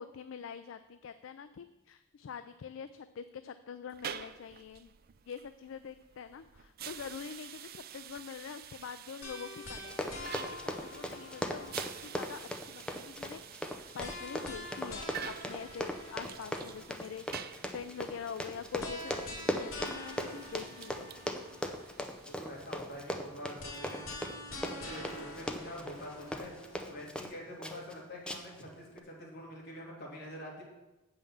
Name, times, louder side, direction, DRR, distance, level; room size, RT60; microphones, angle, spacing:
voice 1, 0.0-4.9 5.3-21.1, left 7 dB, 70° left, 11 dB, 0.4 m, -45 dB
sound 1, 3.9-23.5, right 9 dB, 50° right, 0.4 m, -49 dB
sound 2, 9.2-12.3 14.0-17.0 18.8-22.0 23.6-27.0, left 1 dB, 90° left, 1.9 m, -46 dB
Run, 9.8-27.3 27.6-27.9 28.3-28.6 29.0-29.1, equal, 5° left, 0.6 m, -39 dB
voice 2, 22.0-24.1 24.7-26.5 26.8-30.6, equal, 55° left, -3 dB, 2.6 m, -46 dB
7.8 x 5.6 x 7.1 m, 1.0 s
head